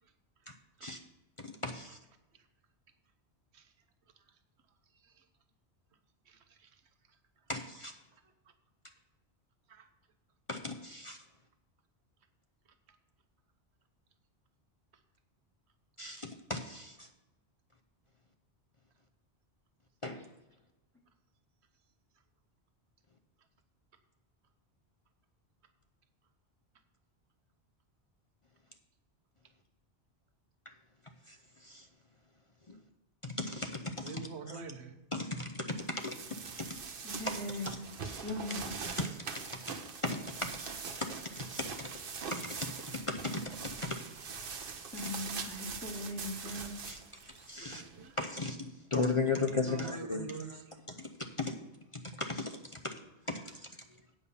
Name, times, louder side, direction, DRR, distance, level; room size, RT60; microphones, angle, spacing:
voice 1, 1.4-2.0 7.5-7.9 10.5-11.2 16.0-17.1 20.0-20.2 30.7-30.8 31.3-31.9 33.2-34.6 35.1-36.7 37.5-38.2 38.8-40.7 41.0-42.0 42.3-44.0 46.9-47.0 47.3-47.8 48.2-50.6 50.9-51.5 51.9-52.9 53.3-53.7, left 3 dB, 35° left, 5 dB, 0.6 m, -37 dB
voice 2, 6.3-6.7 9.7-9.9 34.0-34.9 47.6-48.2 49.6-50.6, right 5 dB, 85° right, 8 dB, 1.2 m, -46 dB
sound 1, 35.8-48.3, right 5 dB, 60° right, 1.0 m, -43 dB
voice 3, 37.0-37.8 38.2-38.7 44.9-46.7, left 1 dB, 10° left, -4 dB, 1.2 m, -39 dB
8.6 x 5.5 x 7.1 m, 1.0 s
omnidirectional pair, 1.1 m